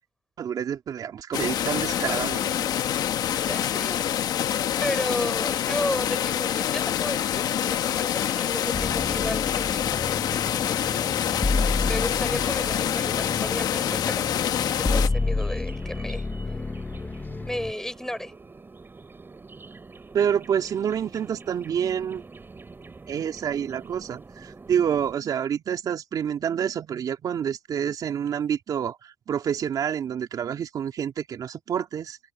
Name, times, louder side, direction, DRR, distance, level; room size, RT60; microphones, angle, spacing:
voice 1, 0.4-2.7 20.1-22.2 23.1-32.2, right 8 dB, 65° right, 2.8 m, -28 dB
sound 1, 1.3-15.1, left 10 dB, 70° left, 1.4 m, -26 dB
voice 2, 3.4-4.0 4.8-7.4 7.7-11.1 11.8-14.3 14.6-16.2 17.5-18.3, left 1 dB, 5° left, 6.2 m, -33 dB
sound 2, 8.7-17.7, left 3 dB, 25° left, 1.1 m, -30 dB
sound 3, 11.5-25.1, right 3 dB, 30° right, 5.0 m, -47 dB
supercardioid pair, 60°, 7 cm